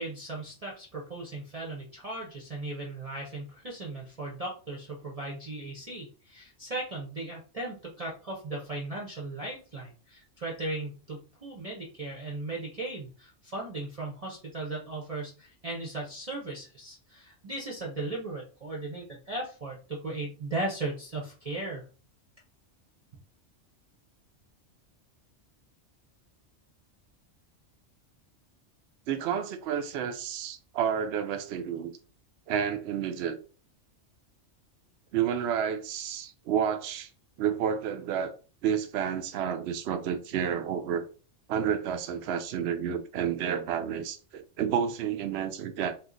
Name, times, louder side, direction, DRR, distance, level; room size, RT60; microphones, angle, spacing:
voice 1, 0.0-21.8, right 2 dB, 35° right, 0.7 m, -37 dB
voice 2, 29.1-31.9 32.5-33.4 35.1-37.1 37.4-38.3 38.6-41.0 41.5-45.9, right 8 dB, 65° right, 0.8 m, -30 dB
2.9 x 2.4 x 3.7 m
omnidirectional pair, 1.2 m